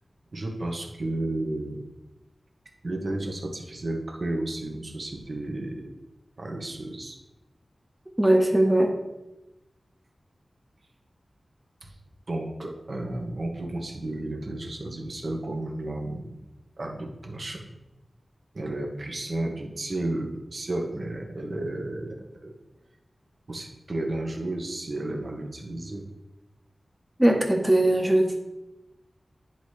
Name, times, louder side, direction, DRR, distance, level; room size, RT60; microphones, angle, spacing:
voice 1, 0.3-1.8 2.8-5.9 6.4-7.2 11.8-11.9 12.3-16.4 16.8-17.7 18.5-22.2 22.4-22.5 23.5-26.1, right 1 dB, 55° right, 1 dB, 1.2 m, -32 dB
voice 2, 8.2-8.9 27.2-28.3, right 1 dB, 15° right, 3 dB, 1.0 m, -20 dB
10.0 x 4.3 x 3.2 m, 0.98 s
wide cardioid pair, 100°, 0 cm